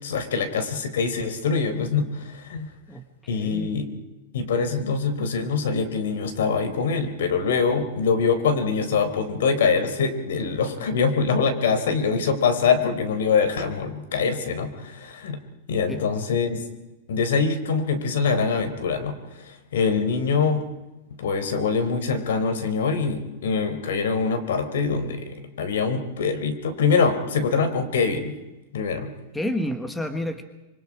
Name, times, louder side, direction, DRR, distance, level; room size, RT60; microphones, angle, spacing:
voice 1, 0.0-2.7 3.3-3.9 4.3-15.4 15.7-16.6 17.1-20.6 21.2-28.4 28.7-29.1, left 5 dB, 85° left, 10 dB, 4.1 m, -24 dB
voice 2, 2.9-3.8 15.9-16.0 29.3-30.4, left 1 dB, 5° left, 8 dB, 1.3 m, -30 dB
26.0 x 24.5 x 4.9 m, 1.0 s
supercardioid pair, 170°, 0 cm